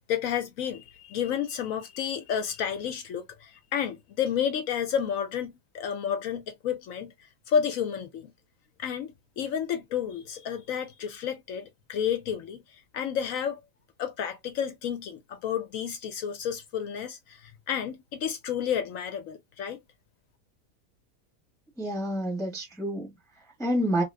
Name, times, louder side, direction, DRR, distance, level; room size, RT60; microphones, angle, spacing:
voice 1, 0.1-7.1 7.5-8.3 8.8-13.6 14.0-19.8, left 8 dB, 70° left, 0.9 m, -31 dB
voice 2, 21.8-24.0, equal, 5° left, 0.8 m, -29 dB
2.9 x 2.4 x 3.2 m
omnidirectional pair, 1.7 m